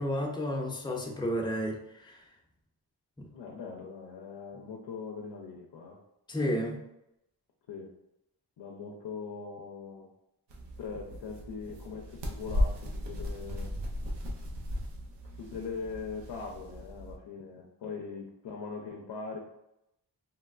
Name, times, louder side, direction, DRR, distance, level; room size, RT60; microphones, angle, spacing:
voice 1, 0.0-2.2 3.2-3.3 6.3-6.8, equal, 10° left, 0 dB, 0.6 m, -32 dB
voice 2, 3.3-6.0 7.7-7.9 8.6-10.1 10.8-13.7 15.4-19.4, left 5 dB, 80° left, -1 dB, 0.6 m, -41 dB
sound 1, 10.5-17.2, left 1 dB, 80° right, 0.7 m, -36 dB
3.3 x 2.2 x 2.3 m, 0.84 s
cardioid pair, 40°, 42 cm